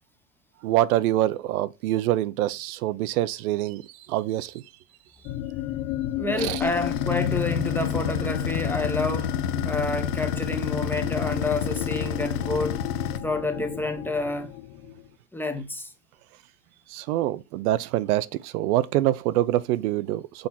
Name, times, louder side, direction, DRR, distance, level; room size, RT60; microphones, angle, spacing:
voice 1, 0.6-4.6 6.4-6.6 16.9-20.5, right 14 dB, 70° right, 0.6 m, -25 dB
sound 1, 5.2-15.1, left 14 dB, 45° left, 0.5 m, -34 dB
voice 2, 6.2-9.3 9.6-12.8 13.2-14.5 15.3-15.9, left 2 dB, 5° left, 0.8 m, -29 dB
sound 2, 6.6-13.2, left 7 dB, 80° left, 1.1 m, -29 dB
6.4 x 4.3 x 5.8 m
supercardioid pair, 140°, 46 cm